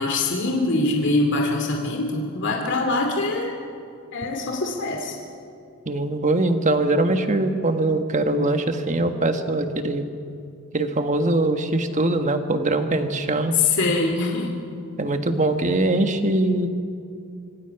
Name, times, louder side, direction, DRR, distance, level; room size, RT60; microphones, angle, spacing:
voice 1, 0.0-3.5 4.1-5.2 13.6-14.5, left 3 dB, 55° left, 1 dB, 2.5 m, -23 dB
voice 2, 5.8-10.0 10.7-13.5 15.0-16.7, right 2 dB, 35° right, 7 dB, 1.4 m, -22 dB
26.0 x 24.5 x 5.9 m, 2.4 s
head